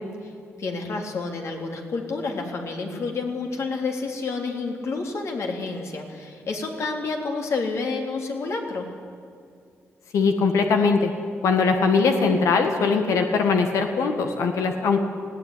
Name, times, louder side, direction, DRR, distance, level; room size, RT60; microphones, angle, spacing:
voice 1, 0.6-8.9, left 3 dB, 65° left, 2 dB, 3.6 m, -29 dB
voice 2, 10.1-11.1 11.4-15.0, left 4 dB, 90° left, 5 dB, 1.8 m, -21 dB
19.5 x 16.5 x 10.0 m, 2.3 s
cardioid pair, 105°, 5 cm